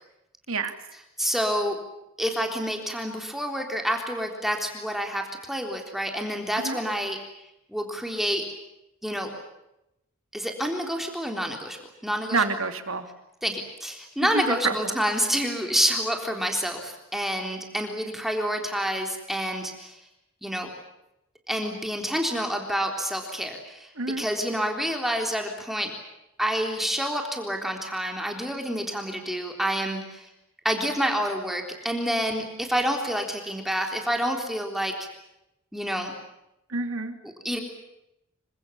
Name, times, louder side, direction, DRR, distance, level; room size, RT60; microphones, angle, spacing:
voice 1, 0.9-1.8 2.2-7.2 7.7-8.5 9.0-9.3 10.3-11.8 12.0-12.4 13.4-20.0 20.4-20.7 21.5-25.9 26.4-30.3 30.6-35.1 35.7-36.1 37.2-37.6, equal, ahead, 2 dB, 3.6 m, -28 dB
voice 2, 12.3-13.1 14.3-14.9 24.0-24.3 36.7-37.2, right 3 dB, 70° right, 7 dB, 3.1 m, -28 dB
27.5 x 25.0 x 7.2 m, 0.87 s
head